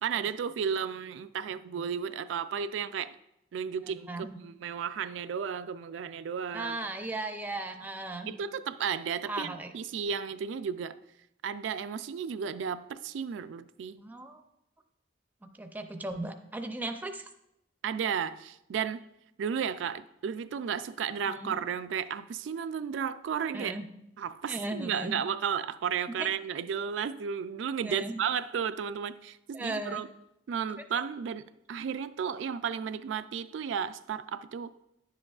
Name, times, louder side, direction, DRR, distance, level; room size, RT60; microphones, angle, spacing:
voice 1, 0.0-3.2 3.5-6.8 8.3-11.0 11.4-14.0 17.8-19.0 19.4-23.7 24.2-30.1 30.5-34.7, right 7 dB, 85° right, 0.3 m, -33 dB
voice 2, 4.1-4.4 6.5-8.4 9.3-9.7 14.0-14.4 15.6-17.3 21.3-21.5 23.5-23.9 24.5-25.2 26.2-26.3 27.8-28.1 29.5-30.0, right 2 dB, 10° right, 0.4 m, -36 dB
10.0 x 7.6 x 2.4 m
head